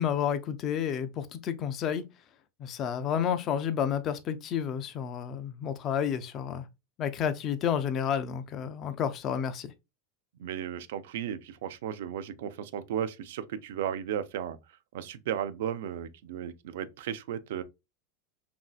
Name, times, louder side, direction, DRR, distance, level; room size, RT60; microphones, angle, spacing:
voice 1, 0.0-2.0 2.6-6.6 7.0-9.7, left 8 dB, 30° left, 0.3 m, -30 dB
voice 2, 10.4-14.6 14.9-17.6, right 9 dB, 80° right, 0.3 m, -35 dB
3.0 x 2.6 x 2.3 m
supercardioid pair, 155°, 0 cm